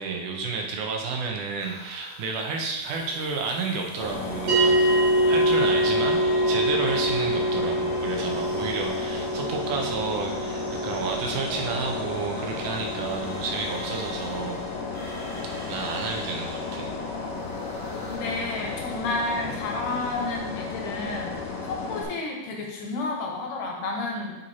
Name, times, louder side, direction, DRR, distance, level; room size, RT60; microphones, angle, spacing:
voice 1, 0.0-14.6 15.7-16.9, right 4 dB, 80° right, 1 dB, 2.3 m, -31 dB
sound 1, 1.6-18.1, equal, 5° left, 0.9 m, -43 dB
sound 2, 4.0-22.0, left 4 dB, 65° left, 2.1 m, -34 dB
sound 3, 4.5-15.0, right 1 dB, 55° right, 3.4 m, -26 dB
voice 2, 18.0-24.4, left 2 dB, 80° left, 1 dB, 2.6 m, -31 dB
7.9 x 4.5 x 4.2 m, 1.1 s
omnidirectional pair, 3.6 m